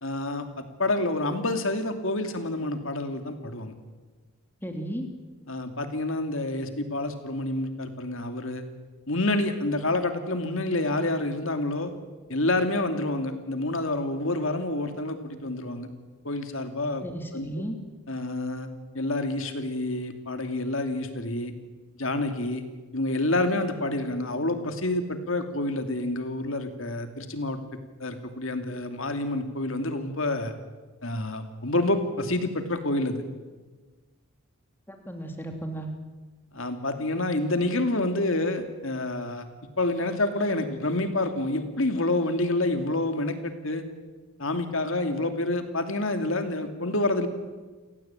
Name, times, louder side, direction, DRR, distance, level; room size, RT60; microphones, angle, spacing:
voice 1, 0.0-3.7 5.5-8.6 9.1-11.9 12.3-15.9 16.2-17.0 17.3-17.5 18.1-18.7 18.9-21.5 21.9-22.6 22.9-27.6 28.0-30.5 31.0-33.2 36.5-39.5 39.8-43.8 44.4-47.3, left 2 dB, 65° left, 7 dB, 2.7 m, -28 dB
voice 2, 4.6-5.1 17.0-17.8 34.9-35.9, right 1 dB, 10° left, 3 dB, 2.9 m, -34 dB
29.0 x 16.5 x 9.0 m, 1.3 s
head